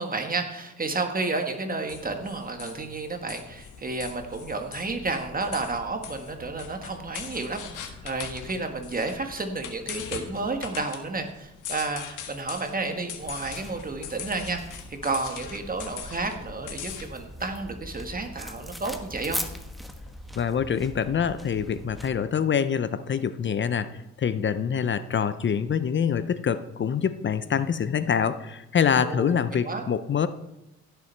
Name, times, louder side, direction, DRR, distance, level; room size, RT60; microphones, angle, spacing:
voice 1, 0.0-19.4 29.0-29.3 29.6-29.8, right 3 dB, 30° right, 5 dB, 1.5 m, -31 dB
sound 1, 1.9-17.0, left 8 dB, 85° left, 1.6 m, -41 dB
sound 2, 13.2-22.1, equal, ahead, 1.2 m, -40 dB
voice 2, 20.4-30.3, left 7 dB, 40° left, 13 dB, 0.6 m, -25 dB
16.0 x 6.9 x 4.5 m, 0.89 s
cardioid pair, 90°, 30 cm